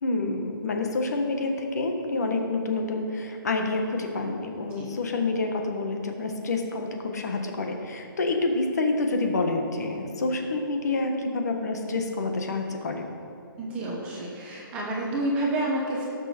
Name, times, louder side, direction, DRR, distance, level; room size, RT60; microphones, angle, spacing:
voice 1, 0.0-13.1, left 3 dB, 45° left, 4 dB, 1.3 m, -28 dB
voice 2, 13.6-16.1, right 1 dB, 10° right, -3 dB, 1.0 m, -29 dB
17.5 x 6.5 x 4.4 m, 2.9 s
hypercardioid pair, 175°, 12 cm